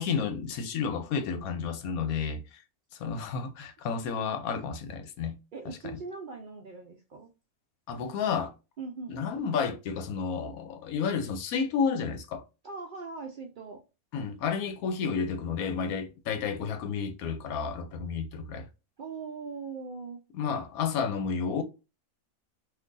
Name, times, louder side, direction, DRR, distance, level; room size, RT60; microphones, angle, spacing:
voice 1, 0.0-2.6 2.9-5.4 5.7-5.8 7.9-8.5 9.1-12.4 14.1-18.7 20.3-21.6, left 6 dB, 80° left, 1.0 m, -31 dB
voice 2, 5.5-7.3 8.8-9.2 12.6-13.8 19.0-20.2, right 4 dB, 75° right, 0.4 m, -40 dB
3.6 x 2.6 x 2.5 m
omnidirectional pair, 1.6 m